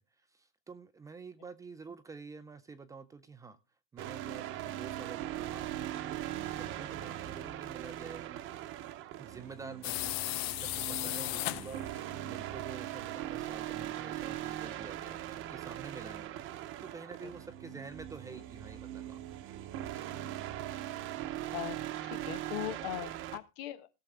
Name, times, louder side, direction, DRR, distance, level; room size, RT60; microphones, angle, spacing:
voice 1, 0.2-3.6 3.9-8.4 9.2-19.6, right 4 dB, 10° right, 0.4 m, -49 dB
sound 1, 4.0-23.4, right 13 dB, 40° right, 0.9 m, -40 dB
sound 2, 9.8-12.0, left 18 dB, 85° left, 0.6 m, -35 dB
voice 2, 21.1-23.9, left 14 dB, 70° left, 1.1 m, -41 dB
17.5 x 6.8 x 3.4 m
supercardioid pair, 160°, 30 cm